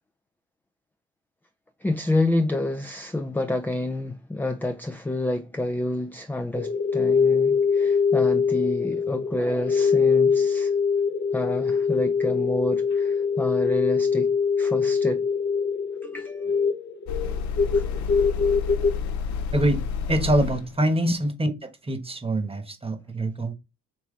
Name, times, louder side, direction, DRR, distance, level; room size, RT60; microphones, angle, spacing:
voice 1, 1.8-10.7 11.3-15.3 16.0-16.5 17.7-17.8 21.0-21.1, left 1 dB, 5° left, 0.4 m, -28 dB
sound 1, 6.5-18.9, left 5 dB, 35° left, 0.7 m, -23 dB
sound 2, 17.1-20.8, left 6 dB, 70° left, 0.6 m, -29 dB
voice 2, 20.1-23.5, right 1 dB, 20° right, 1.1 m, -25 dB
5.3 x 3.0 x 3.1 m
cardioid pair, 90°, 30 cm